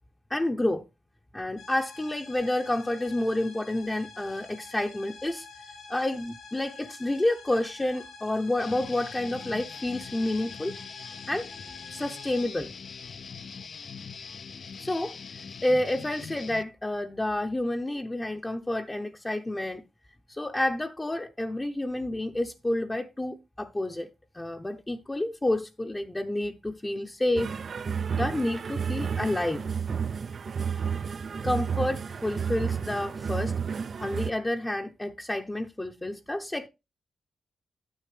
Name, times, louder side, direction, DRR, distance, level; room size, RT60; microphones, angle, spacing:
voice 1, 0.3-0.8 1.3-5.5 5.9-10.8 11.3-11.5 11.9-12.7 14.8-19.8 20.3-24.1 24.3-27.5 28.1-29.6 31.4-33.5 34.0-36.7, left 1 dB, 15° left, 0.7 m, -29 dB
sound 1, 1.6-12.5, left 4 dB, 80° left, 4.0 m, -47 dB
Guitar, 8.6-16.6, left 5 dB, 55° left, 0.5 m, -42 dB
sound 2, 27.4-34.3, right 6 dB, 55° right, 0.4 m, -31 dB
9.9 x 7.5 x 3.3 m
cardioid pair, 85°, 0 cm